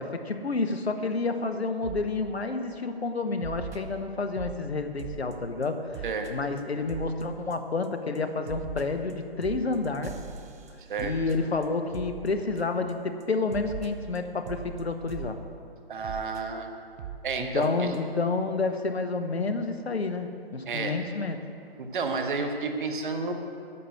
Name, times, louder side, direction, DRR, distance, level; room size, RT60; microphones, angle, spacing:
voice 1, 0.0-6.0 6.3-10.1 11.0-15.4 17.4-21.4, left 3 dB, 80° left, 7 dB, 1.2 m, -29 dB
sound 1, 1.8-2.1 2.5-2.7 3.4-4.6 5.0-5.3 5.6-5.7 5.9-6.3 6.6-6.7 6.9-7.2 7.5-7.9 8.1-12.9 13.2-13.3 13.5-15.3 16.0-16.4 17.0-17.2 17.6-17.7 17.9-18.0, right 8 dB, 15° right, 0.5 m, -40 dB
voice 2, 15.9-16.8 17.2-17.9 20.7-21.0 21.8-23.3, right 4 dB, 55° right, 5 dB, 1.5 m, -31 dB
9.9 x 7.2 x 7.9 m, 2.5 s
figure-of-eight pair, 140°, 31 cm